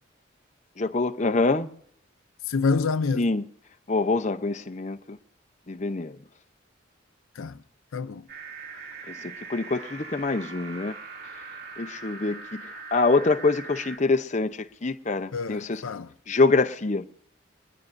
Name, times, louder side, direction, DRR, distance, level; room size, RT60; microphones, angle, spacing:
voice 1, 0.8-1.7 3.1-3.5 3.9-5.2 5.7-6.2 9.1-10.9 11.8-15.8 16.3-17.0, left 3 dB, 35° left, 0.7 m, -25 dB
voice 2, 2.5-3.3 7.4-7.6 7.9-8.2 15.3-16.1, left 4 dB, 80° left, 0.5 m, -27 dB
sound 1, 8.3-14.0, right 3 dB, 50° right, 2.5 m, -41 dB
23.0 x 20.5 x 2.6 m
head